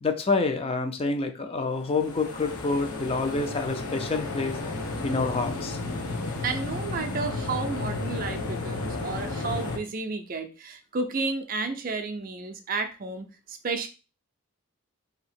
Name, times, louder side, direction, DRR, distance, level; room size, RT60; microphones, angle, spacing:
voice 1, 0.0-4.6 5.0-5.8, left 3 dB, 25° left, 7 dB, 0.4 m, -27 dB
sound 1, 1.8-9.8, left 2 dB, 85° left, 0.9 m, -33 dB
voice 2, 6.4-13.9, right 4 dB, 40° right, 6 dB, 0.4 m, -32 dB
2.9 x 2.8 x 4.2 m, 0.33 s
head